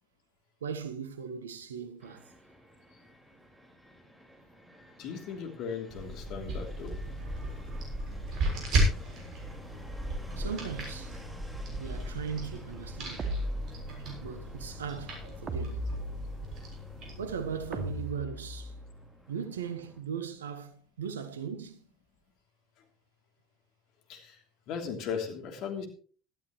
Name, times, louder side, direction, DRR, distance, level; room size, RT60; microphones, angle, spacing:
voice 1, 0.6-2.3 10.4-11.2 11.8-13.3 14.2-15.9 17.2-18.7 19.3-21.8, right 7 dB, 85° right, 1.4 m, -38 dB
Fixed-wing aircraft airplane, 2.0-20.0, equal, ahead, 4.7 m, -54 dB
voice 2, 5.0-7.0 24.1-24.4 24.7-25.9, left 6 dB, 60° left, 3.2 m, -37 dB
sound 1, 5.9-18.0, right 1 dB, 55° right, 6.6 m, -35 dB
sound 2, 13.2-14.3 15.5-16.7 17.7-19.0, right 1 dB, 40° right, 2.3 m, -36 dB
17.0 x 13.0 x 3.1 m
hypercardioid pair, 65°, 0 cm